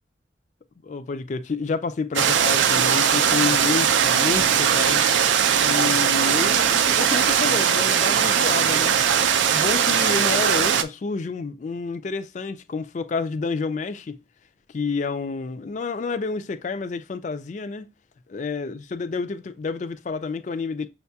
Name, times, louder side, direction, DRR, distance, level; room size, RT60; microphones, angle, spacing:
voice 1, 0.8-5.0 5.6-9.0 9.5-14.2 14.7-17.9 18.3-20.9, left 4 dB, 40° left, 0.3 m, -29 dB
sound 1, 2.2-10.8, right 8 dB, 80° right, 0.4 m, -20 dB
6.3 x 2.3 x 2.7 m
head